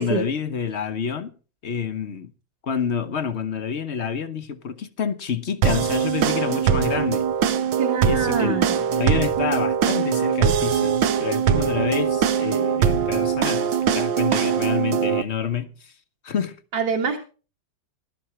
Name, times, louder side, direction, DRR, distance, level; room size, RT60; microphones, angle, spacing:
voice 1, 0.0-1.3 1.6-2.3 2.6-7.3 8.0-8.6 8.9-15.9 16.2-16.6, left 7 dB, 50° left, 0.9 m, -28 dB
sound 1, 5.6-15.2, right 7 dB, 75° right, 1.6 m, -22 dB
voice 2, 7.8-8.8 16.7-17.2, right 6 dB, 55° right, 2.4 m, -25 dB
17.0 x 12.0 x 3.1 m
omnidirectional pair, 2.1 m